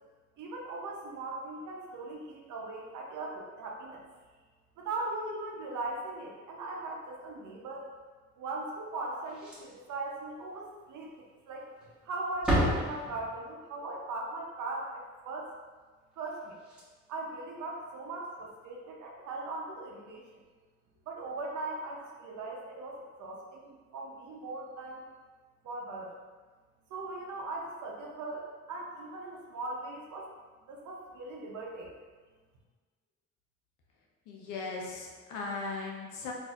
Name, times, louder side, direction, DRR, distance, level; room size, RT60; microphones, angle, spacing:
voice 1, 0.4-4.0 4.8-7.9 8.4-11.6 12.0-15.5 16.2-16.6 17.1-20.2 21.1-25.0 25.6-26.1 26.9-30.3 30.7-31.9, right 2 dB, 75° right, -1 dB, 0.7 m, -39 dB
Slam, 9.2-9.9 10.2-10.3 10.8-10.9 11.7-12.0 12.3-13.6 16.3-16.4 16.6-16.8 18.3-18.5, equal, 5° right, 1.3 m, -31 dB
voice 2, 34.3-36.3, left 3 dB, 85° left, -1 dB, 0.7 m, -38 dB
4.1 x 2.7 x 2.4 m, 1.4 s
cardioid pair, 90°, 30 cm